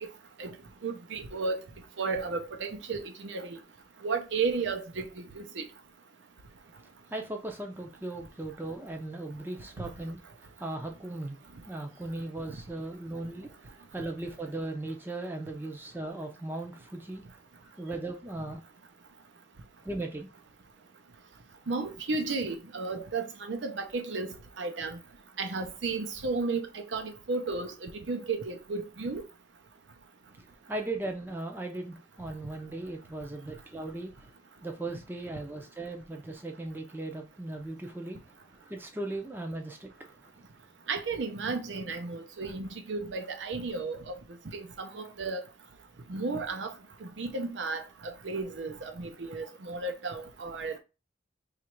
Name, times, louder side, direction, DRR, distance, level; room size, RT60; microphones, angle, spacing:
voice 1, 0.8-1.6 2.0-3.6 4.0-5.1 5.3-5.6 21.7-25.0 25.4-29.2 40.9-44.2 44.5-45.4 46.1-46.7 47.0-50.8, right 4 dB, 85° right, 0.7 m, -33 dB
voice 2, 7.1-11.4 11.7-17.2 17.6-18.6 19.8-20.3 30.7-34.4 34.6-40.2, right 2 dB, 10° right, 0.4 m, -38 dB
3.0 x 2.5 x 4.4 m
head